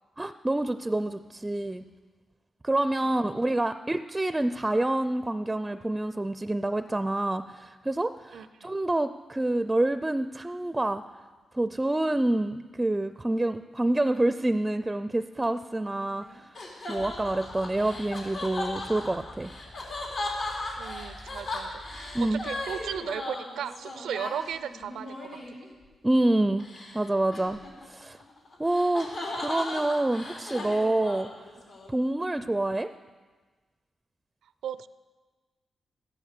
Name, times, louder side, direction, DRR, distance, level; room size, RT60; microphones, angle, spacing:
voice 1, 0.2-1.8 2.6-11.0 11.5-16.5 16.9-19.5 22.1-22.4 26.0-26.6 26.9-27.6 27.9-28.2 28.6-29.2 29.4-31.3 31.9-32.9, right 1 dB, 15° right, 11 dB, 0.4 m, -27 dB
voice 2, 3.0-3.4 8.3-8.7 20.8-25.4 32.4-32.5 34.6-34.9, right 9 dB, 90° right, 14 dB, 0.5 m, -36 dB
sound 1, 15.8-25.7 26.6-27.0 27.3-31.9, left 2 dB, 75° left, 3.7 m, -37 dB
sound 2, 17.0-23.0, left 1 dB, 60° left, 1.7 m, -50 dB
13.5 x 12.0 x 6.6 m, 1.4 s
cardioid pair, 75°, 0 cm